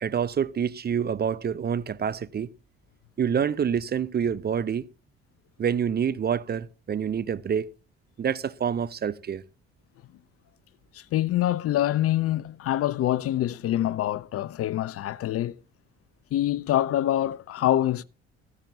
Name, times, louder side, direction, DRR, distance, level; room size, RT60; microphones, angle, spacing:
voice 1, 0.0-2.5 3.2-4.8 5.6-7.7 8.2-9.4, right 7 dB, 30° right, 0.7 m, -27 dB
voice 2, 10.9-15.6 16.3-18.0, left 13 dB, 40° left, 0.7 m, -25 dB
15.5 x 15.0 x 2.7 m
figure-of-eight pair, 50°, 34 cm